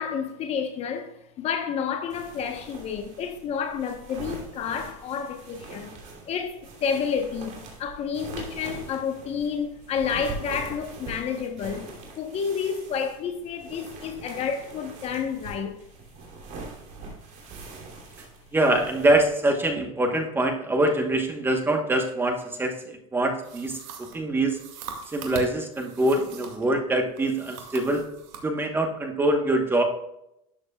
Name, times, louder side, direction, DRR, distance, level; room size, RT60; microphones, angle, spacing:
voice 1, 0.0-5.9 6.3-15.8, left 6 dB, 35° left, 0.9 m, -30 dB
sound 1, 2.1-19.3, right 3 dB, 40° right, 2.9 m, -42 dB
voice 2, 18.5-24.6 25.1-28.0 28.4-29.8, right 1 dB, 10° right, 1.1 m, -24 dB
sound 2, 23.4-26.7 27.2-28.5, right 6 dB, 65° right, 2.2 m, -41 dB
12.5 x 7.7 x 2.3 m
supercardioid pair, 150°, 18 cm